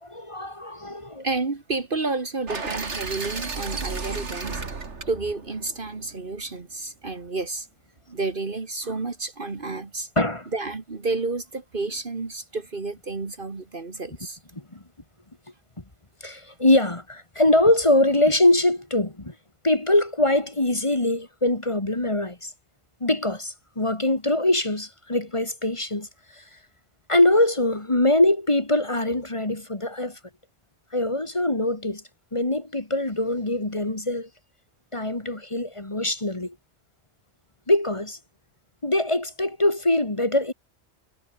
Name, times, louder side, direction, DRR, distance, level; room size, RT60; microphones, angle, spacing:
voice 1, 0.0-1.3 10.2-10.5 14.7-14.8 16.2-19.3 19.6-22.5 23.0-26.1 26.3-26.4 27.1-30.2 30.9-32.0 32.3-34.3 34.9-36.6 37.7-38.2 38.8-40.5, left 1 dB, 25° left, 2.1 m, -23 dB
voice 2, 1.2-4.6 5.1-7.7 8.1-10.1 10.5-14.4, right 3 dB, 50° right, 2.0 m, -30 dB
sound 1, 2.5-6.5, right 4 dB, 90° right, 2.6 m, -33 dB
omnidirectional pair, 1.1 m